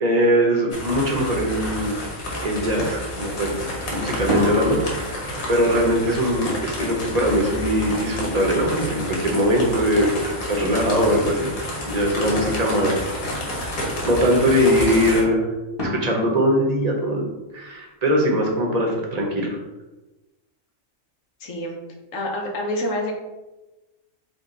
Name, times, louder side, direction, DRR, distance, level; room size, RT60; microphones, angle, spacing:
voice 1, 0.0-1.9 2.4-3.6 3.9-5.2 5.5-10.2 10.5-11.5 11.9-13.1 14.0-15.5 15.8-17.3 17.5-19.6, equal, 35° right, 0 dB, 0.8 m, -21 dB
sound 1, 0.7-15.2, left 1 dB, 85° left, 1.5 m, -30 dB
sound 2, 4.3-8.9 10.6-10.7 11.1-12.0 15.8-17.5, left 2 dB, 20° left, 1.1 m, -33 dB
voice 2, 21.4-21.8 22.1-23.1, left 1 dB, 70° left, 1 dB, 1.2 m, -27 dB
5.2 x 2.3 x 3.8 m, 1.1 s
omnidirectional pair, 1.4 m